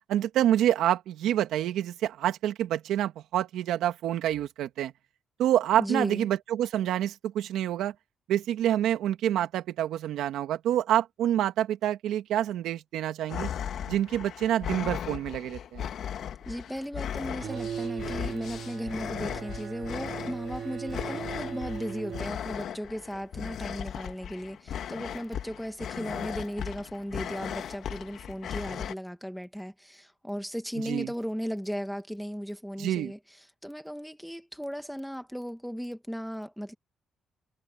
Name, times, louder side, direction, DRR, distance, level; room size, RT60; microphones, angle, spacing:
voice 1, 0.1-4.9 5.4-7.9 8.3-13.5 13.9-15.9 30.8-31.1 32.8-33.1, right 11 dB, 85° right, 1.9 m, -27 dB
voice 2, 5.8-6.3 16.5-33.2 33.6-36.7, equal, ahead, 2.0 m, -36 dB
sound 1, 13.3-28.9, left 9 dB, 65° left, 2.3 m, -37 dB
sound 2, 17.4-22.3, right 8 dB, 60° right, 3.2 m, -38 dB
cardioid pair, 90°, 0 cm